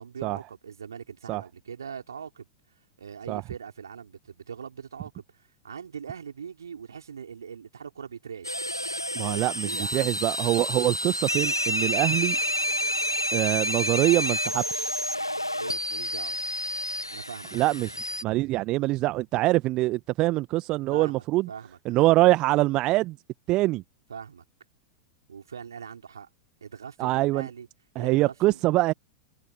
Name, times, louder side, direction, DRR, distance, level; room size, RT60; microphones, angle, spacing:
voice 1, 0.0-2.5 2.8-8.7 9.3-10.2 15.5-16.4 17.1-17.5 20.9-21.8 24.1-24.4 25.3-26.3 26.6-27.7 27.9-28.6, right 7 dB, 70° right, 4.7 m, -41 dB
sound 1, 8.4-18.2, equal, 90° left, 0.9 m, -29 dB
voice 2, 9.1-12.4 13.3-14.9 17.5-18.0 18.2-21.5 21.8-23.2 23.5-23.8 27.0-27.5 27.9-28.9, right 18 dB, 35° right, 1.1 m, -24 dB
figure-of-eight pair, 95°, 2 cm